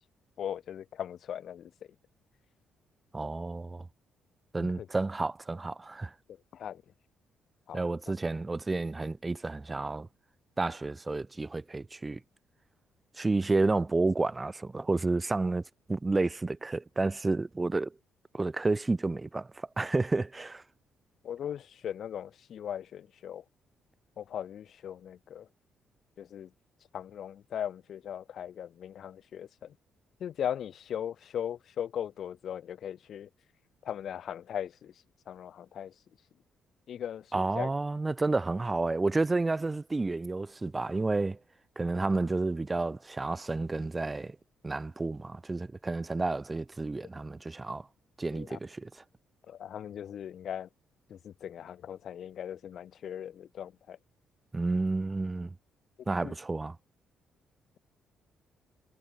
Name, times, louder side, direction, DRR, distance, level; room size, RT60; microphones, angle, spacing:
voice 1, 0.4-1.7 4.6-4.9 6.5-6.8 7.7-7.8 21.2-23.4 24.2-25.5 26.2-26.5 26.9-29.7 30.2-33.3 33.8-34.9 35.3-35.9 36.9-37.7 48.3-48.6 49.5-50.7 51.1-54.0 56.2-56.3, left 9 dB, 65° left, 1.0 m, -38 dB
voice 2, 3.1-3.9 4.5-6.1 7.7-10.1 10.6-12.2 13.2-15.6 15.9-17.9 18.3-20.6 37.3-41.4 41.8-44.4 44.6-47.8 48.2-48.9 54.5-55.5 56.1-56.8, right 3 dB, 20° right, 0.4 m, -30 dB
cardioid pair, 90°, 0 cm